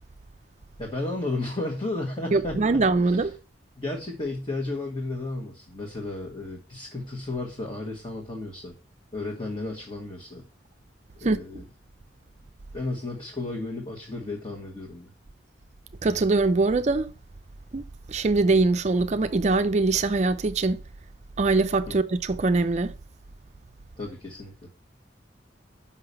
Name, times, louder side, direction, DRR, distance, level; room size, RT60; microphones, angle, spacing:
voice 1, 0.8-3.3 3.8-8.7 9.1-10.4 11.2-11.6 12.7-15.1 21.9-22.0 24.0-24.5, left 2 dB, 25° left, 1.5 m, -33 dB
voice 2, 2.3-3.4 11.2-11.4 16.0-17.1 17.7-20.8 21.4-22.9, right 3 dB, 40° right, 0.4 m, -23 dB
5.9 x 5.7 x 6.8 m
head